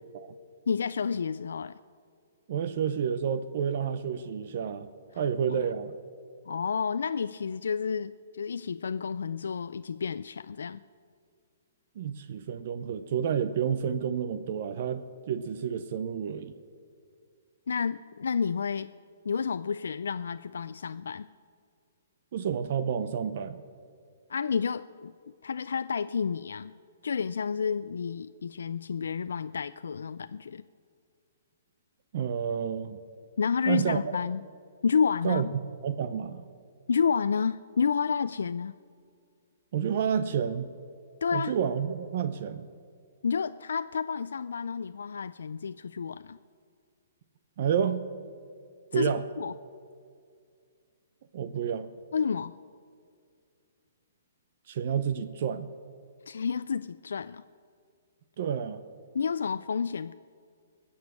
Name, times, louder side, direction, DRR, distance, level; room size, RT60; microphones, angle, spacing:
voice 1, 0.7-1.8 5.5-5.6 6.5-10.8 17.7-18.9 19.2-21.3 24.3-25.1 25.4-26.7 27.0-30.6 33.4-34.4 34.8-35.5 36.9-38.8 41.2-41.6 43.2-46.4 48.9-49.1 49.4-49.5 52.1-52.6 56.3-57.4 59.1-60.1, left 6 dB, 90° left, 13 dB, 0.3 m, -30 dB
voice 2, 2.5-4.9 5.2-5.9 12.0-16.5 22.3-23.6 32.1-33.0 33.7-34.2 35.2-36.4 39.7-40.7 41.3-42.7 47.6-48.1 48.9-49.2 51.3-51.9 54.7-55.7 58.4-58.8, right 8 dB, 40° right, 11 dB, 0.5 m, -30 dB
19.5 x 7.1 x 8.3 m, 2.3 s
hypercardioid pair, 170°, 0 cm